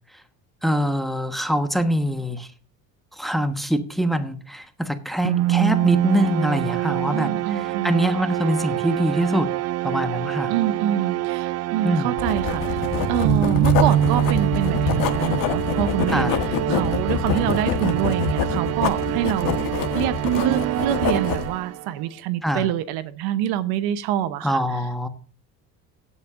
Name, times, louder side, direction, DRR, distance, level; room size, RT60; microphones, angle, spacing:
voice 1, 0.6-2.5 3.2-9.5 9.8-10.5 11.8-12.1 16.1-16.4 22.4-22.7 24.4-25.1, equal, ahead, 1.2 m, -24 dB
sound 1, 5.2-22.0, right 14 dB, 45° right, 0.4 m, -25 dB
voice 2, 7.1-8.0 10.5-16.4 16.7-19.5 19.9-24.6, right 11 dB, 80° right, 0.9 m, -26 dB
Writing, 12.2-21.5, left 7 dB, 60° left, 1.4 m, -26 dB
16.5 x 8.2 x 2.5 m
supercardioid pair, 100°, 38 cm